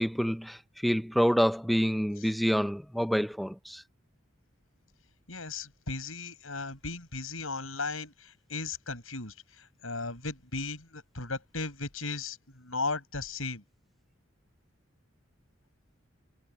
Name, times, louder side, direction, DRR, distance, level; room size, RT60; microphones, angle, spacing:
voice 1, 0.0-3.8, equal, ahead, 0.7 m, -27 dB
voice 2, 5.3-13.6, left 3 dB, 90° left, 7.3 m, -36 dB
head